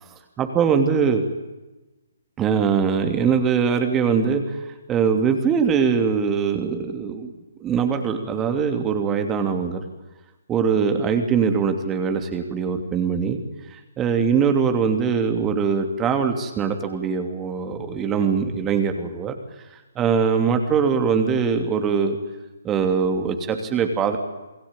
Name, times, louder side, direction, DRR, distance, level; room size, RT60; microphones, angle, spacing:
voice 1, 0.4-1.2 2.4-4.6 4.9-7.3 7.6-9.9 10.5-13.4 14.0-19.4 19.9-22.2 22.6-24.2, right 6 dB, 15° right, 6 dB, 2.9 m, -22 dB
28.5 x 21.0 x 9.1 m, 1.1 s
figure-of-eight pair, 135°, 0 cm